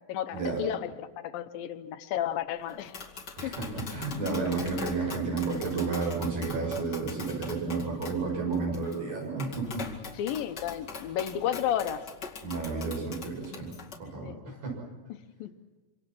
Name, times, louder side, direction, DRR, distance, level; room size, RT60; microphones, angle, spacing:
voice 1, 0.1-2.9 3.4-3.5 10.2-12.1 14.2-14.4 15.1-15.5, left 10 dB, 80° left, 10 dB, 2.7 m, -32 dB
Tap, 2.7-14.0, left 5 dB, 35° left, 2.5 m, -43 dB
voice 2, 3.4-9.8 12.4-13.7 14.0-14.8, right 4 dB, 75° right, -1 dB, 8.6 m, -31 dB
26.5 x 26.0 x 6.2 m, 1.3 s
omnidirectional pair, 4.0 m